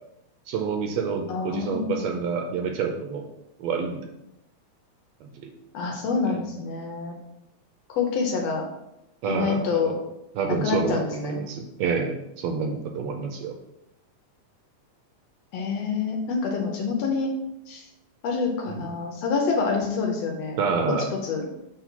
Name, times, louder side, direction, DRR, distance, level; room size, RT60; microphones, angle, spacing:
voice 1, 0.5-3.3 3.6-4.0 5.2-5.5 6.3-6.4 9.2-9.9 10.3-13.5 18.7-18.9 20.6-21.1, right 5 dB, 75° right, 3 dB, 1.7 m, -28 dB
voice 2, 1.3-2.1 5.7-7.2 7.9-8.7 9.3-9.9 10.5-11.4 15.5-17.3 17.7-17.8 18.2-20.6 21.1-21.5, left 5 dB, 70° left, 1 dB, 1.8 m, -27 dB
4.6 x 4.2 x 5.7 m, 0.86 s
omnidirectional pair, 3.4 m